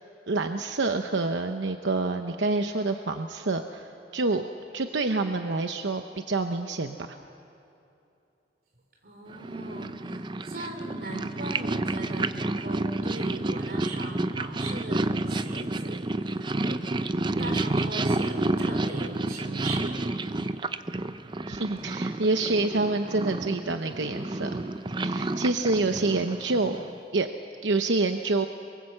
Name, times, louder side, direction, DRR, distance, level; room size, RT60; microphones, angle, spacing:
voice 1, 0.3-4.4 4.7-7.1 21.5-24.6 25.0-26.8 27.1-27.3 27.6-28.5, right 3 dB, 85° right, 6 dB, 0.9 m, -27 dB
voice 2, 9.0-20.1 20.4-20.6, right 2 dB, 55° right, 3 dB, 3.9 m, -39 dB
Purr, 9.3-27.0, right 2 dB, 25° right, 0.5 m, -30 dB
27.5 x 23.0 x 7.8 m, 2.7 s
head